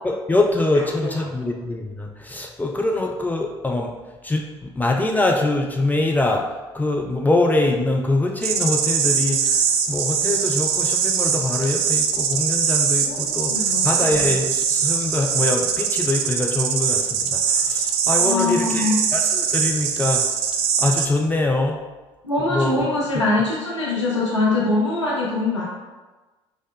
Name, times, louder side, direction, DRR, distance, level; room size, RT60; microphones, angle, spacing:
voice 1, 0.0-3.9 4.2-9.6 9.9-20.2 20.8-21.8 22.5-22.7 23.1-23.2, left 2 dB, 10° left, 0 dB, 0.4 m, -23 dB
sound 1, 8.4-21.1, right 7 dB, 65° right, 0.4 m, -22 dB
voice 2, 13.0-13.9 18.2-19.0 22.2-25.6, left 2 dB, 85° left, -5 dB, 0.6 m, -23 dB
3.9 x 2.5 x 3.4 m, 1.2 s
figure-of-eight pair, 55°, 15 cm